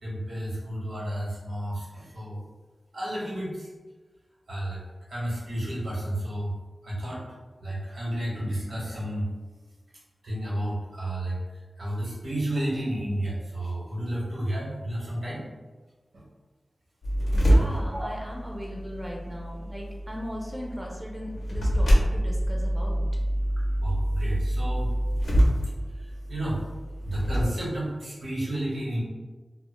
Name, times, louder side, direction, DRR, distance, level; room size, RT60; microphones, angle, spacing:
voice 1, 0.0-2.4 2.9-3.7 4.5-4.8 5.1-6.5 6.8-7.2 7.6-9.3 10.2-11.4 11.8-15.4 16.1-16.2 17.9-18.1 23.8-24.9 26.3-26.6 27.0-29.0, right 1 dB, 85° right, -7 dB, 0.9 m, -31 dB
sound 1, 17.0-27.4, equal, 85° left, 0.5 m, -26 dB
voice 2, 17.3-23.1, equal, 15° right, -2 dB, 0.4 m, -38 dB
2.1 x 2.0 x 3.0 m, 1.3 s
wide cardioid pair, 70°, 0 cm